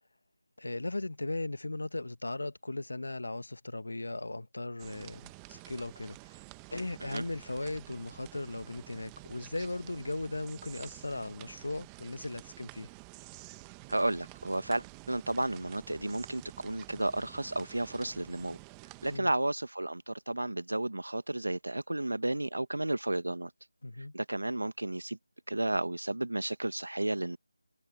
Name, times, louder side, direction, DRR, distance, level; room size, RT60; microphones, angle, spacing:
voice 1, 0.6-6.2 6.7-12.9 19.1-19.3 23.8-24.1, left 2 dB, 70° left, 1.5 m, -37 dB
sound 1, 4.8-19.2, right 29 dB, 10° right, 1.0 m, -50 dB
voice 2, 13.9-18.6 19.0-23.5 24.1-25.2 25.5-27.4, right 1 dB, 85° right, 1.3 m, -32 dB
figure-of-eight pair, 165°, 0 cm